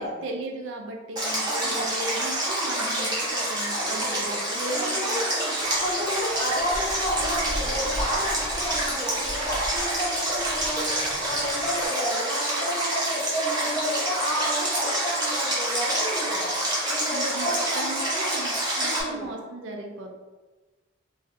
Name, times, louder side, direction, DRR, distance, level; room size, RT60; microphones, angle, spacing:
voice 1, 0.0-5.5 17.1-20.1, right 2 dB, 65° right, 1 dB, 0.4 m, -36 dB
Stream, 1.2-19.0, right 1 dB, 20° right, 0.7 m, -27 dB
voice 2, 3.7-4.3 4.7-5.3 5.7-11.0 11.3-16.5 16.9-18.3 18.8-19.3, equal, 20° left, -6 dB, 0.8 m, -31 dB
sound 1, 5.6-11.9, equal, 65° left, 1.1 m, -38 dB
3.0 x 2.6 x 2.5 m, 1.2 s
head